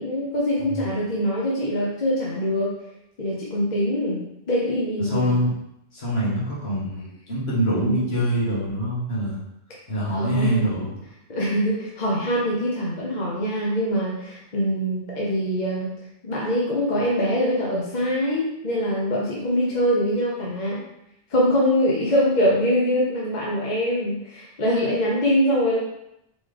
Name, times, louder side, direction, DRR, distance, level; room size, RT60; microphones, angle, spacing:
voice 1, 0.0-2.7 3.2-5.3 7.7-8.1 10.1-10.8 11.3-20.8 21.3-25.8, equal, 45° left, -5 dB, 0.9 m, -23 dB
voice 2, 5.0-5.5 5.9-9.4 9.9-11.0, equal, 60° left, -8 dB, 1.8 m, -25 dB
4.1 x 3.7 x 3.3 m, 0.83 s
omnidirectional pair, 1.2 m